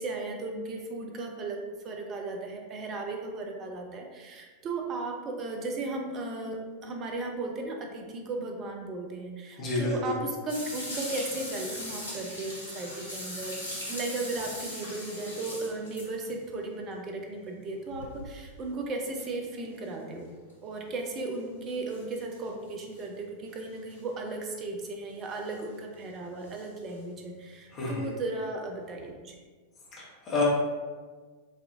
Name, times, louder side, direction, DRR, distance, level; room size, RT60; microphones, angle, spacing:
voice 1, 0.0-1.6 1.8-13.6 13.9-20.3 20.6-29.3, right 2 dB, 30° right, 2 dB, 0.5 m, -36 dB
voice 2, 9.6-10.1 27.7-28.1 29.9-30.4, left 3 dB, 30° left, -5 dB, 1.2 m, -30 dB
sound 1, 10.5-16.4 17.9-18.6 19.2-19.3 20.5-20.6 21.9-22.5 22.9-23.0 23.9-24.0 25.3-25.5 26.5-26.6 29.0-29.1, left 1 dB, 75° left, 1.1 m, -39 dB
4.1 x 2.7 x 2.5 m, 1.4 s
figure-of-eight pair, 90°, 0 cm